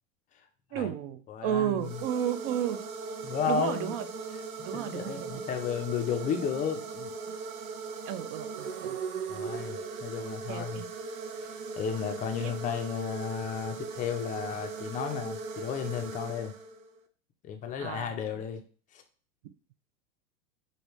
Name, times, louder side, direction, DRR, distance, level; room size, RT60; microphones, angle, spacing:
voice 1, 0.7-2.8 3.5-4.0 4.7-5.4 8.1-9.0 10.5-10.9 12.4-12.5 17.8-18.1, right 10 dB, 40° right, 11 dB, 0.4 m, -32 dB
voice 2, 1.3-1.9 3.2-3.9 4.6-7.1 9.3-10.8 11.8-16.5 17.4-18.6 18.9-19.0, left 7 dB, 20° left, 6 dB, 0.4 m, -33 dB
sound 1, 1.8-17.0, right 4 dB, 70° right, 0.7 m, -39 dB
5.0 x 2.7 x 3.1 m, 0.42 s
hypercardioid pair, 100°, 43 cm